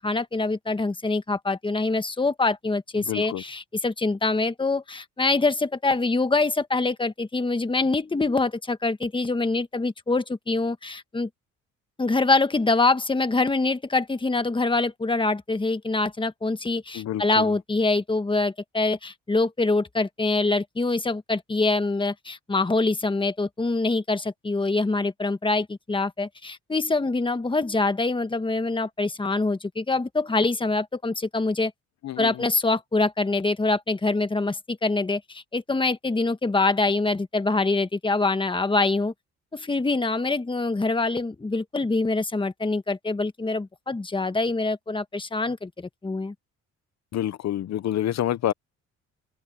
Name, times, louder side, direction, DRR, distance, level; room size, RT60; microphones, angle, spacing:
voice 1, 0.0-11.3 12.0-31.7 32.2-39.1 39.5-46.3, left 3 dB, 15° left, 1.4 m, -25 dB
voice 2, 3.0-3.4 16.9-17.5 32.0-32.3 47.1-48.5, left 11 dB, 65° left, 0.9 m, -28 dB
cardioid pair, 90°, 30 cm